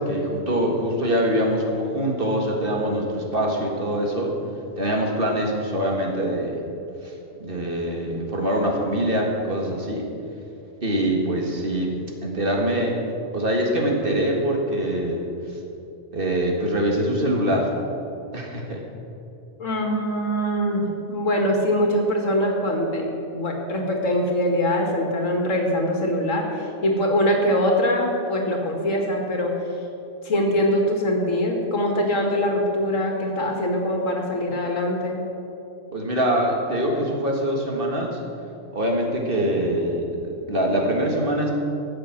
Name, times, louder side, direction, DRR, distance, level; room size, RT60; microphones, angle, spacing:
voice 1, 0.0-4.3 4.8-6.6 7.0-7.1 7.4-10.0 10.8-12.0 12.2-13.0 13.3-15.2 16.1-17.7 18.3-18.8 35.9-38.2 38.7-40.0 40.5-41.5, right 1 dB, 45° right, 0 dB, 1.9 m, -24 dB
voice 2, 19.6-29.5 30.2-35.2, equal, 85° left, 2 dB, 2.2 m, -23 dB
13.5 x 7.6 x 7.4 m, 2.8 s
omnidirectional pair, 1.3 m